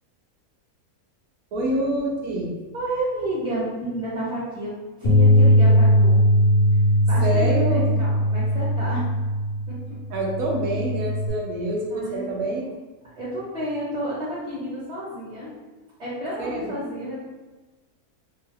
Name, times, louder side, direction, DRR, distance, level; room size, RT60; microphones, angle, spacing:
voice 1, 1.5-2.5 7.2-8.0 10.1-12.7 16.4-16.7, right 1 dB, 75° right, -1 dB, 1.1 m, -26 dB
voice 2, 2.7-4.7 5.0-6.2 7.1-9.0 11.9-12.7 13.2-15.5 16.0-17.1, right 1 dB, 25° right, -9 dB, 1.2 m, -30 dB
Bass guitar, 5.0-11.3, equal, 55° left, 0.7 m, -19 dB
2.9 x 2.3 x 3.1 m, 1.2 s
omnidirectional pair, 1.6 m